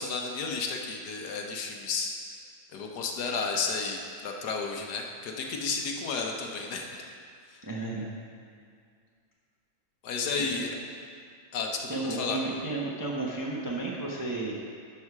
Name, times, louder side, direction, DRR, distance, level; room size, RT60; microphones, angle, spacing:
voice 1, 0.0-2.1 2.7-7.1 10.0-10.7 11.5-12.4, left 4 dB, 65° left, 2 dB, 1.3 m, -32 dB
voice 2, 7.6-8.1 10.5-10.6 11.9-14.5, right 2 dB, 20° right, -3 dB, 0.5 m, -33 dB
11.5 x 5.6 x 4.7 m, 2.2 s
omnidirectional pair, 2.0 m